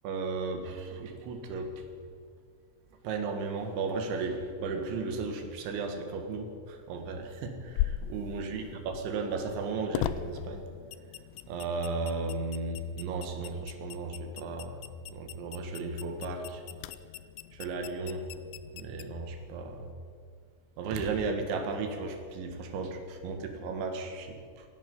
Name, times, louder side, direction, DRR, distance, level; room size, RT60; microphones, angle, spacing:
voice 1, 0.0-1.7 3.0-10.7 11.5-14.8 15.1-16.6 17.5-18.2 18.7-19.9 20.8-24.7, right 4 dB, 85° right, 5 dB, 3.9 m, -35 dB
sound 1, 7.7-19.9, left 13 dB, 85° left, 2.9 m, -40 dB
16.5 x 16.0 x 5.4 m, 2.1 s
omnidirectional pair, 5.2 m